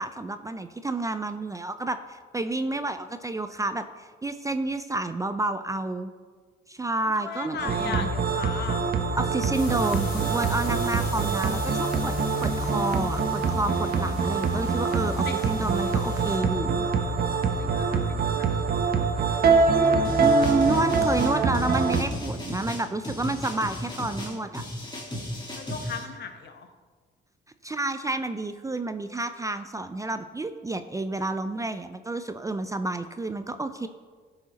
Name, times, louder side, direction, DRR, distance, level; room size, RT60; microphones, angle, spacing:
voice 1, 0.0-6.1 6.7-8.1 9.2-12.1 12.4-16.9 20.2-24.6 27.6-33.9, right 2 dB, 15° right, 10 dB, 0.4 m, -30 dB
voice 2, 7.2-8.8 15.2-15.3 17.6-18.5 19.0-19.4 25.6-26.7, left 6 dB, 60° left, 6 dB, 1.1 m, -37 dB
sound 1, 7.6-22.0, right 4 dB, 50° right, 0.9 m, -24 dB
sound 2, 9.5-16.4, left 3 dB, 85° left, 2.7 m, -41 dB
sound 3, 20.0-26.0, left 1 dB, 20° left, 1.9 m, -35 dB
13.5 x 4.9 x 4.1 m, 1.6 s
cardioid pair, 90°, 20 cm